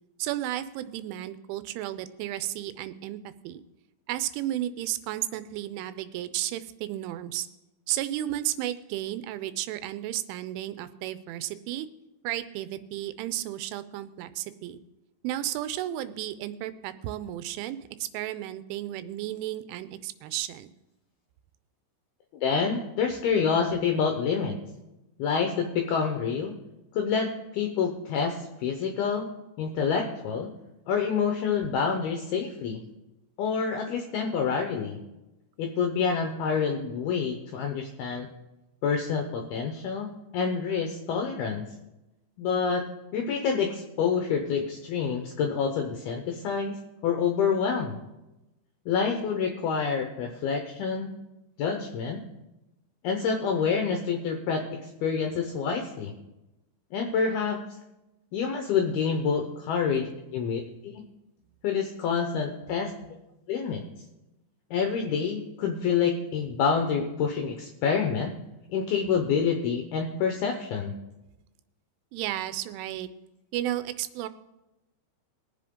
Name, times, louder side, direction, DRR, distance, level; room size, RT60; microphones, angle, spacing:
voice 1, 0.2-3.6 4.1-7.5 7.9-11.9 12.2-14.8 15.2-20.7 72.1-73.1 73.5-74.3, right 13 dB, 85° right, 13 dB, 3.1 m, -33 dB
voice 2, 22.4-24.6 25.2-26.5 26.9-29.3 29.6-30.5 30.9-32.8 33.4-35.0 35.6-38.3 38.8-41.6 42.4-42.9 43.1-46.8 47.0-48.0 48.9-51.1 51.6-52.2 53.0-56.1 56.9-57.6 58.3-61.0 61.6-62.9 63.5-63.8 64.7-68.3 68.7-70.9, left 6 dB, 80° left, 3 dB, 2.2 m, -27 dB
21.5 x 7.6 x 3.7 m, 0.97 s
omnidirectional pair, 5.6 m